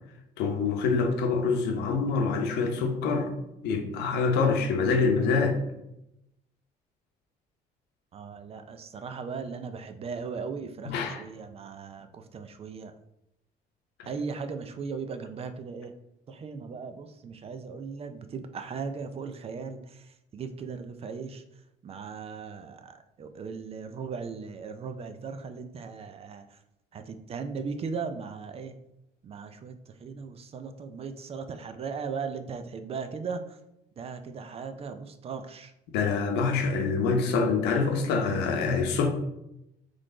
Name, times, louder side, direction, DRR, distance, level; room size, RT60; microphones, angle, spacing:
voice 1, 0.4-3.3 3.6-5.6 10.9-11.2 14.0-14.1 35.9-39.1, left 4 dB, 85° left, 4 dB, 0.8 m, -25 dB
voice 2, 8.1-12.9 14.1-15.9 16.3-21.4 21.8-26.6 26.9-28.7 29.2-33.6 34.0-35.7, right 5 dB, 35° right, 9 dB, 0.4 m, -38 dB
4.0 x 3.2 x 3.7 m, 0.85 s
cardioid pair, 110°, 17 cm